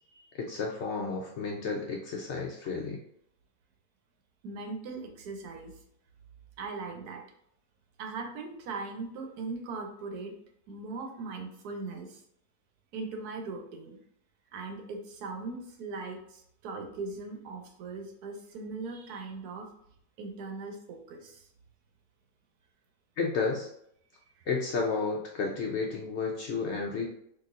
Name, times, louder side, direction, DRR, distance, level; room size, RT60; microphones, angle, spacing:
voice 1, 0.4-3.0 23.2-23.7 24.5-27.1, left 4 dB, 65° left, -1 dB, 0.7 m, -32 dB
voice 2, 4.4-5.7 6.6-7.2 8.0-10.3 10.7-12.2 12.9-14.0 14.5-19.7 20.2-21.4, right 3 dB, 85° right, 3 dB, 1.3 m, -39 dB
4.0 x 2.8 x 2.4 m, 0.71 s
omnidirectional pair, 1.6 m